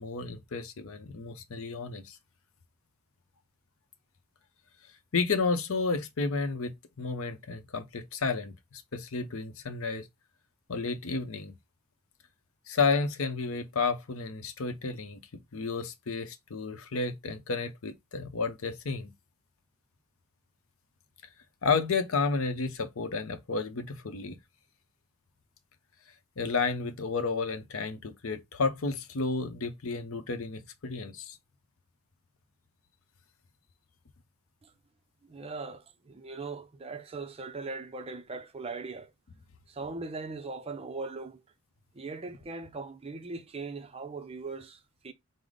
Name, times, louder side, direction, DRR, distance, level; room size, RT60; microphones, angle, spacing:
voice 1, 0.0-2.2 5.1-10.1 10.7-11.5 12.7-15.2 15.5-19.1 21.6-24.4 26.4-31.4, left 4 dB, 70° left, 0.7 m, -31 dB
voice 2, 35.2-39.1 39.7-41.4 41.9-45.1, right 3 dB, 25° right, 0.4 m, -40 dB
4.8 x 2.0 x 3.8 m
head